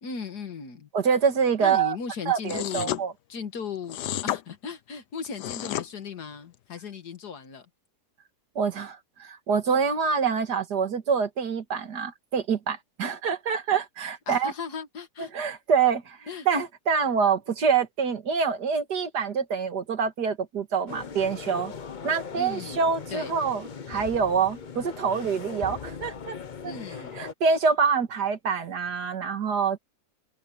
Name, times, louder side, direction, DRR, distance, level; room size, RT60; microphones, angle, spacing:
voice 1, 0.0-0.9 1.6-3.0 3.3-7.7 14.3-15.6 16.3-16.5 22.4-22.8 23.1-23.4 26.6-27.2, left 6 dB, 75° left, 2.2 m, -37 dB
voice 2, 0.9-2.0 2.3-3.1 8.6-14.5 15.3-16.2 16.5-21.7 22.0-26.4 26.6-26.7 27.2-29.8, right 6 dB, 75° right, 2.3 m, -26 dB
sound 1, 2.5-3.0 3.9-4.4 5.2-5.9, left 13 dB, 90° left, 1.3 m, -31 dB
sound 2, 20.9-27.3, left 6 dB, 40° left, 0.7 m, -39 dB
omnidirectional pair, 1.8 m